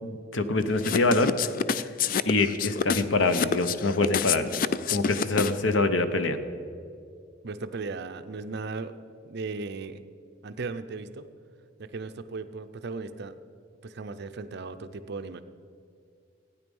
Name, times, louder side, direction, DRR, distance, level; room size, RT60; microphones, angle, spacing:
voice 1, 0.0-1.4 1.8-1.9 2.3-4.5 4.9-6.4, left 2 dB, 75° left, 10 dB, 0.9 m, -25 dB
sound 1, 0.8-5.7, left 6 dB, 45° left, 0.4 m, -27 dB
voice 2, 7.4-9.0 9.2-10.0 10.4-11.3 11.8-13.4 13.8-15.4, right 4 dB, 60° right, 10 dB, 0.6 m, -36 dB
15.5 x 9.6 x 5.4 m, 2.4 s
head